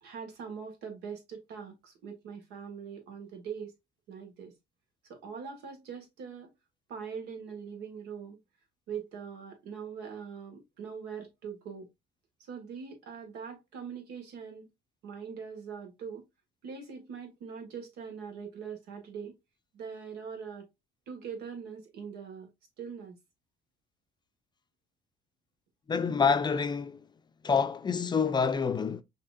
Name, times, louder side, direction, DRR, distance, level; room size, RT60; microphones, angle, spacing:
voice 1, 0.0-3.7 4.1-4.5 5.1-6.5 6.9-8.4 8.9-11.9 12.4-14.7 15.0-16.2 16.6-19.3 19.7-20.7 21.1-22.5 22.8-23.2, right 6 dB, 85° right, 1.6 m, -42 dB
voice 2, 25.9-27.0 27.4-29.0, left 5 dB, 25° left, 0.4 m, -27 dB
5.8 x 2.9 x 2.4 m
cardioid pair, 110°, 17 cm